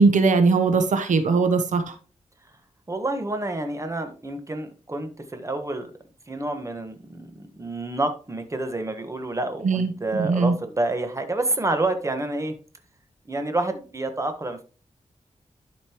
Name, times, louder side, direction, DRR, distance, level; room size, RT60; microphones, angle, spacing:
voice 1, 0.0-1.9 9.6-9.9 10.2-10.5, right 4 dB, 90° right, 8 dB, 1.0 m, -19 dB
voice 2, 2.9-5.9 6.3-12.5 13.3-14.6, right 2 dB, 25° right, 7 dB, 1.3 m, -28 dB
11.5 x 5.3 x 3.0 m, 0.37 s
wide cardioid pair, 90°, 12 cm